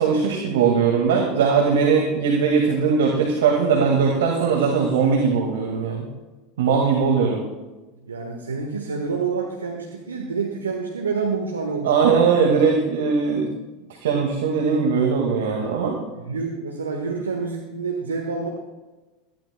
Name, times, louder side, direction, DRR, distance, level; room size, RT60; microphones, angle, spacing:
voice 1, 0.0-6.1 6.6-7.4 11.8-13.5 14.0-16.0, right 5 dB, 70° right, 1 dB, 2.0 m, -20 dB
voice 2, 8.0-12.4 15.5-15.7 16.2-18.5, right 5 dB, 85° right, 1 dB, 1.4 m, -28 dB
22.0 x 14.5 x 2.3 m, 1.2 s
hypercardioid pair, 85°, 0 cm